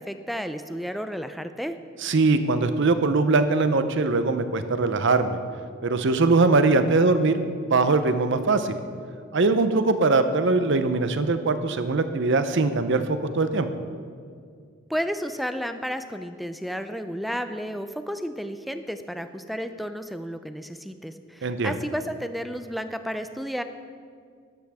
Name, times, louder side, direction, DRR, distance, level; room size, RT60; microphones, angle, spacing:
voice 1, 0.0-1.8 14.9-23.6, equal, ahead, 9 dB, 0.4 m, -32 dB
voice 2, 2.0-5.4 5.8-7.4 7.7-8.7 9.3-13.7 21.4-21.8, right 3 dB, 60° right, 10 dB, 0.7 m, -21 dB
12.5 x 12.0 x 3.5 m, 2.1 s
head